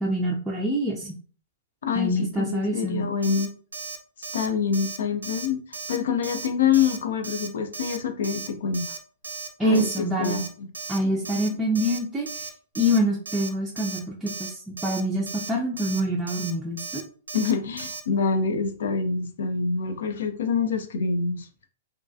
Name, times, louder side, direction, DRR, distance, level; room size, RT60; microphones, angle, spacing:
voice 1, 0.0-1.2 1.9-3.1 9.6-10.4 10.9-12.5 12.8-17.0, equal, 10° right, -4 dB, 0.4 m, -26 dB
voice 2, 1.8-3.5 4.3-5.6 5.9-8.8 9.6-10.7 11.5-11.6 17.3-21.5, left 6 dB, 65° left, 7 dB, 0.4 m, -26 dB
Alarm, 3.2-3.5 3.7-4.0 4.2-4.5 4.7-5.0 5.2-5.5 5.7-6.0 6.2-6.5 6.7-7.0 7.2-7.5 7.7-8.0 8.2-8.5 8.7-9.0 9.2-9.5 9.7-10.0 10.2-10.5 10.7-11.0 11.3-11.5 11.8-12.0 12.3-12.5 12.8-13.0 13.3-13.5 13.8-14.0 14.3-14.5 14.8-15.0 15.3-15.5 15.8-16.0 16.3-16.5 16.8-17.0 17.3-17.5 17.8-18.0, right 4 dB, 80° right, 0.4 m, -35 dB
2.3 x 2.2 x 2.6 m, 0.42 s
figure-of-eight pair, 110°, 0 cm